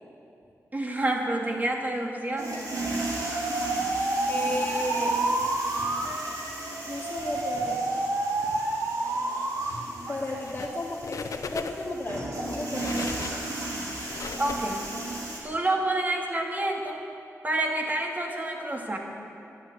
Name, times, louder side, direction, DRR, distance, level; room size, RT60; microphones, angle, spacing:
voice 1, 0.7-2.6 14.4-14.9 15.4-17.0 17.4-19.0, right 1 dB, 30° right, 1 dB, 2.2 m, -28 dB
sound 1, 2.4-15.4, right 2 dB, 85° right, 3.3 m, -36 dB
Alarm, 2.5-9.7 10.1-10.6, right 2 dB, 65° right, 1.8 m, -29 dB
voice 2, 4.3-5.1 6.9-7.8 10.1-13.5, left 2 dB, 30° left, -6 dB, 2.1 m, -34 dB
sound 2, 10.4-10.8 11.0-12.0 12.5-15.2, left 5 dB, 70° left, 0.8 m, -38 dB
11.5 x 11.5 x 8.1 m, 2.8 s
cardioid pair, 70°, 6 cm